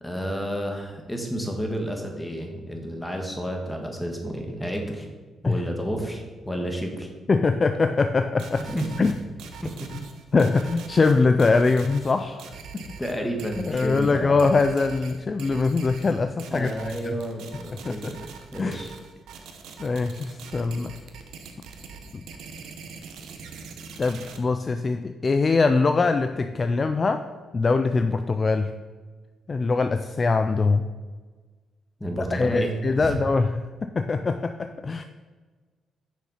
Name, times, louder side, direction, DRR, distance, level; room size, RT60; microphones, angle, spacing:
voice 1, 0.0-5.1 5.4-7.1 8.6-8.9 9.6-9.9 13.0-14.5 16.5-18.2 18.5-18.9 32.0-33.1, equal, 10° left, 2 dB, 1.7 m, -31 dB
voice 2, 7.3-8.7 9.0-9.1 10.3-12.4 13.6-16.7 17.0-17.2 17.7-18.1 18.6-18.8 19.8-21.0 24.0-28.7 29.5-30.8 32.3-35.0, left 4 dB, 35° left, 8 dB, 0.4 m, -23 dB
sound 1, 8.4-24.4, right 5 dB, 85° right, 1.0 m, -43 dB
6.6 x 6.3 x 5.7 m, 1.4 s
cardioid pair, 90°, 0 cm